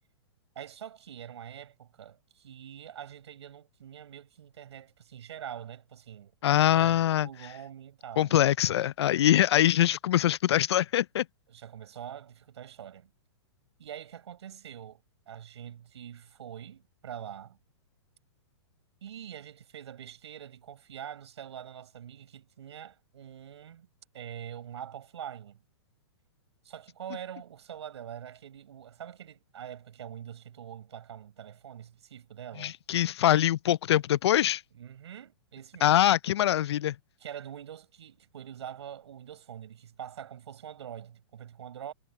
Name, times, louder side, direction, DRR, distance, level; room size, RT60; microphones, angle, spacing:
voice 1, 0.5-8.3 11.5-13.1 13.8-15.0 15.3-17.6 19.0-23.9 24.1-25.6 26.6-32.7 34.7-36.0 37.2-41.9, right 9 dB, 75° right, 4.8 m, -44 dB
voice 2, 6.4-7.3 8.2-11.2 32.6-34.6 35.8-37.0, left 12 dB, 70° left, 0.4 m, -23 dB
hypercardioid pair, 170°, 14 cm